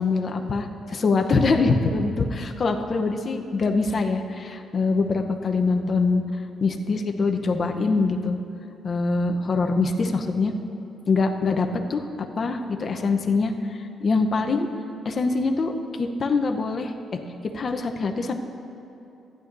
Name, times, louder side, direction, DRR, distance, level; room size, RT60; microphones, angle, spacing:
voice 1, 0.0-6.2 6.6-8.3 8.8-10.5 11.1-13.5 14.0-14.7 15.0-15.7 16.0-16.9 17.5-18.3, left 3 dB, 45° left, 4 dB, 0.8 m, -23 dB
15.0 x 10.5 x 2.7 m, 3.0 s
cardioid pair, 90°, 0 cm